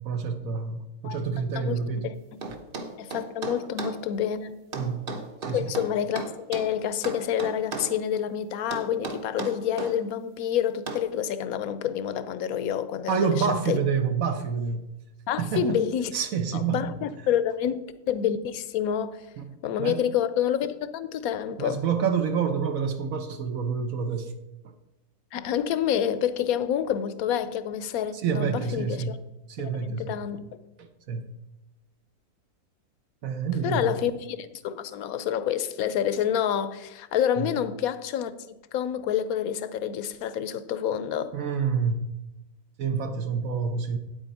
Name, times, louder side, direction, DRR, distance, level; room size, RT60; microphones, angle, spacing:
voice 1, 0.0-2.1 4.8-5.0 5.4-5.7 13.1-14.9 15.4-15.8 16.1-16.8 19.4-19.5 19.8-20.0 21.6-24.3 24.6-24.7 28.1-29.2 29.5-30.2 30.8-31.3 33.2-34.0 37.4-37.5 41.3-42.1 42.8-44.0, right 6 dB, 65° right, 1.2 m, -28 dB
voice 2, 1.5-2.1 3.0-4.5 5.5-6.2 6.5-13.8 15.3-16.1 16.5-17.8 18.1-19.2 19.6-21.8 25.3-29.2 29.6-30.4 33.6-41.3, left 9 dB, 70° left, 1.0 m, -28 dB
sound 1, 2.4-4.0 4.7-6.7 7.0-8.0 8.7-10.0 10.9-11.1, right 3 dB, 40° right, 1.0 m, -35 dB
8.9 x 8.8 x 4.2 m
omnidirectional pair, 1.6 m